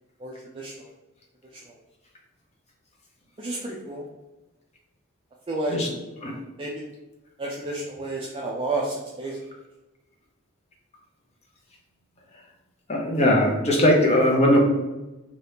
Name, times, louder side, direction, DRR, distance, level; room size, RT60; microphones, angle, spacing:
voice 1, 0.2-0.9 1.7-1.8 3.4-4.0 5.5-5.8 6.6-6.8 7.4-9.4, right 2 dB, 25° right, -3 dB, 0.3 m, -31 dB
voice 2, 12.9-14.6, left 1 dB, 30° left, 0 dB, 0.6 m, -19 dB
2.7 x 2.4 x 3.3 m, 1.0 s
head